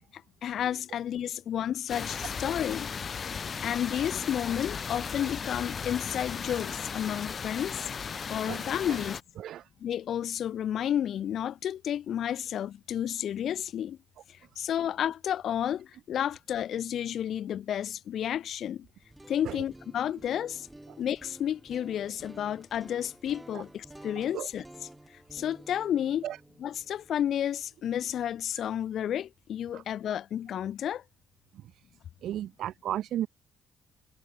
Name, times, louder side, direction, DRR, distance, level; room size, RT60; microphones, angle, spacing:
voice 1, 0.1-2.9 3.6-7.9 8.3-9.2 9.8-14.0 14.3-18.9 19.3-20.7 21.0-24.6 25.3-26.2 26.6-31.0, left 10 dB, 65° left, 1.3 m, -31 dB
sound 1, 1.9-9.2, left 6 dB, 45° left, 0.3 m, -36 dB
voice 2, 8.5-9.0 9.4-9.7 19.4-19.6 23.5-23.6 24.1-24.5 26.2-26.4 29.7-29.8 31.5-31.7 32.2-33.3, right 12 dB, 75° right, 1.0 m, -35 dB
sound 2, 18.9-29.0, right 1 dB, 10° right, 1.7 m, -52 dB
cardioid pair, 90°, 0 cm